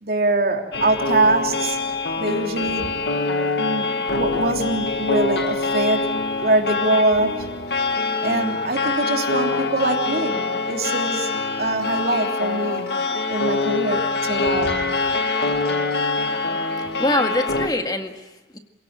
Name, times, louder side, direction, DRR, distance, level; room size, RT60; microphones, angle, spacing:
voice 1, 0.0-1.8 2.2-3.0 3.6-6.1 6.4-7.4 8.2-10.4 10.7-11.3 11.6-12.9 13.3-14.8, right 2 dB, 55° right, 2 dB, 3.3 m, -23 dB
sound 1, 0.7-17.7, left 3 dB, 70° left, 1.6 m, -24 dB
voice 2, 16.8-18.6, left 1 dB, 20° left, 5 dB, 1.9 m, -25 dB
27.0 x 17.5 x 8.9 m, 1.1 s
head